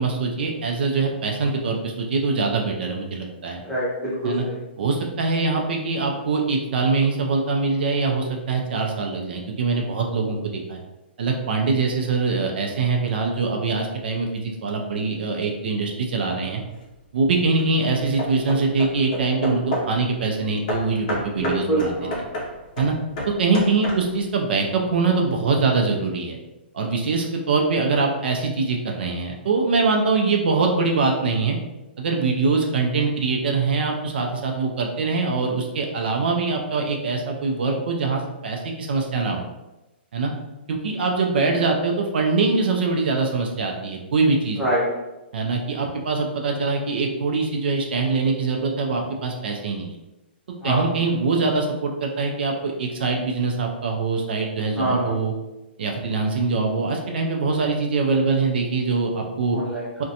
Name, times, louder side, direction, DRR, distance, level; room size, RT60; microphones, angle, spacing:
voice 1, 0.0-3.6 4.2-4.4 4.8-10.8 11.2-16.6 17.1-21.9 22.8-22.9 23.3-26.4 26.7-31.6 32.0-39.5 40.1-40.3 40.7-44.6 45.3-50.0 50.6-55.3 55.8-59.6 60.0-60.1, right 4 dB, 60° right, 2 dB, 0.4 m, -23 dB
voice 2, 3.6-4.6 21.4-22.2 41.4-41.6 44.6-44.8 50.6-50.9 54.7-55.2 59.5-60.0, right 1 dB, ahead, -10 dB, 0.6 m, -25 dB
Hammer / Wood, 16.5-16.9 17.6-20.0 20.7-24.3, left 1 dB, 40° left, 0.6 m, -31 dB
2.4 x 2.1 x 2.7 m, 1.0 s
hypercardioid pair, 165°, 6 cm